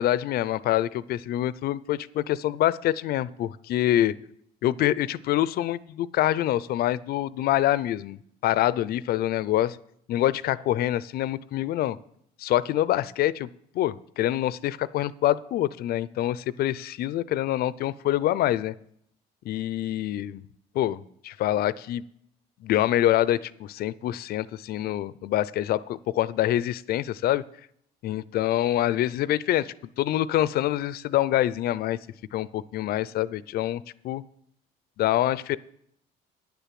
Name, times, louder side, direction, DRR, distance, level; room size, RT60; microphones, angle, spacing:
voice 1, 0.0-4.1 4.6-9.8 10.1-12.0 12.4-13.5 13.7-18.7 19.5-20.4 20.7-22.0 22.6-27.4 28.0-32.0 32.3-34.2 35.0-35.6, left 13 dB, 65° left, 19 dB, 0.5 m, -25 dB
9.9 x 7.0 x 7.5 m, 0.70 s
cardioid pair, 110°, 17 cm